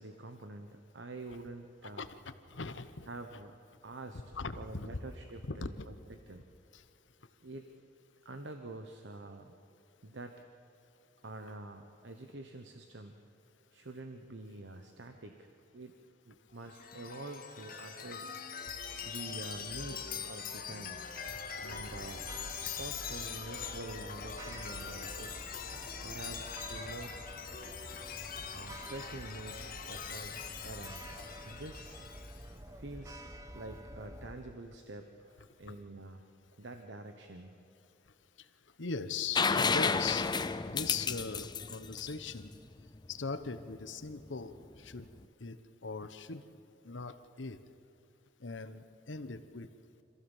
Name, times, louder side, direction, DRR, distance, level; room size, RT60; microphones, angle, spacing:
voice 1, 0.0-2.0 3.1-4.2 4.6-6.4 7.4-7.7 8.2-9.5 10.0-10.4 11.2-13.2 13.7-15.9 16.3-18.4 19.0-21.0 21.6-22.3 22.7-25.5 26.0-27.4 28.5-31.0 31.4-32.0 32.7-36.2 36.6-37.6, right 2 dB, 75° right, 6 dB, 1.1 m, -47 dB
voice 2, 2.0-3.4 4.3-5.0 5.4-5.9 6.7-6.8 21.3-21.4 35.6-35.8 38.4-38.5 38.8-40.3 40.6-42.5 43.1-45.1 45.4-46.4 46.8-47.6 48.4-49.7, left 4 dB, 90° left, 11 dB, 1.1 m, -40 dB
Chime, 16.6-32.5, left 7 dB, 50° left, 1.7 m, -43 dB
sound 1, 21.7-34.4, right 1 dB, 20° right, 1.0 m, -48 dB
sound 2, 39.4-43.1 44.9-45.0, left 5 dB, 25° left, 0.6 m, -31 dB
26.0 x 15.0 x 7.3 m, 2.7 s
head